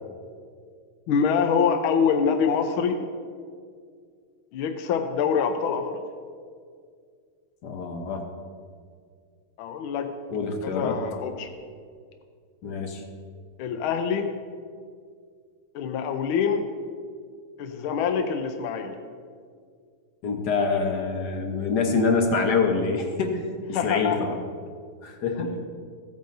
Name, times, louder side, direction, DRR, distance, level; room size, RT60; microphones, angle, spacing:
voice 1, 1.1-3.0 4.5-6.0 9.6-10.1 10.6-11.5 13.6-14.3 15.7-16.7 17.6-18.9 23.7-24.2, left 6 dB, 75° left, 6 dB, 1.5 m, -25 dB
voice 2, 7.6-8.3 10.3-11.0 12.6-13.0 20.2-23.4 23.7-24.4 25.0-25.6, left 4 dB, 60° left, 4 dB, 1.3 m, -25 dB
15.5 x 9.2 x 2.6 m, 2.1 s
omnidirectional pair, 2.3 m